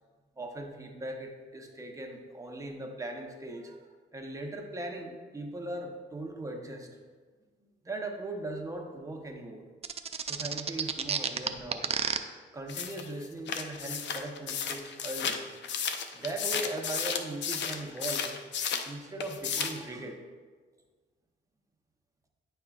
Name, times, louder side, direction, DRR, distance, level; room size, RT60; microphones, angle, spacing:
voice 1, 0.4-7.2 7.8-9.7 10.3-11.9 12.5-15.4 15.8-18.3 18.8-20.2, right 2 dB, 15° right, 2 dB, 1.0 m, -39 dB
sound 1, 9.8-12.2, right 6 dB, 30° right, 0.4 m, -30 dB
sound 2, 12.7-18.9 19.2-19.8, left 7 dB, 65° left, 0.6 m, -33 dB
9.8 x 5.5 x 2.4 m, 1.5 s
cardioid pair, 90°, 20 cm